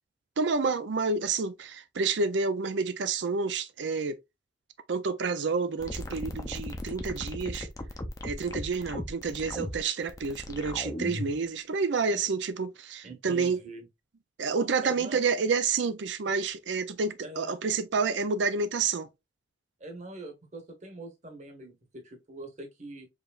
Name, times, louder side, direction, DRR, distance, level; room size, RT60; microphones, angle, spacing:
voice 1, 0.4-4.2 4.9-7.7 8.2-13.6 14.4-19.1, right 4 dB, 70° right, 0.5 m, -29 dB
sound 1, 5.8-11.4, left 1 dB, 20° left, 0.6 m, -37 dB
voice 2, 13.0-13.9 14.8-15.2 17.2-17.5 19.8-23.1, right 2 dB, 40° right, 1.2 m, -43 dB
4.9 x 3.2 x 2.4 m
head